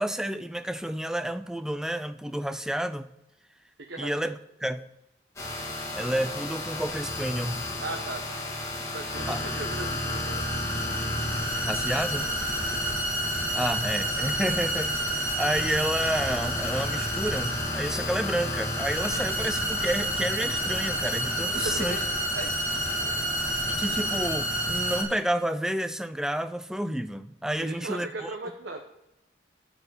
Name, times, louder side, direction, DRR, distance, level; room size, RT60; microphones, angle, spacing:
voice 1, 0.0-3.1 4.0-4.8 5.9-7.7 9.3-9.4 11.6-12.3 13.5-22.0 23.7-28.3, right 1 dB, 5° right, 0.4 m, -30 dB
voice 2, 3.9-4.3 7.8-10.7 12.5-12.8 19.1-19.2 21.5-22.1 22.4-23.8 27.6-28.8, right 2 dB, 80° right, 1.1 m, -39 dB
sound 1, 5.4-25.0, equal, 15° left, 2.1 m, -29 dB
12.0 x 5.1 x 6.7 m
head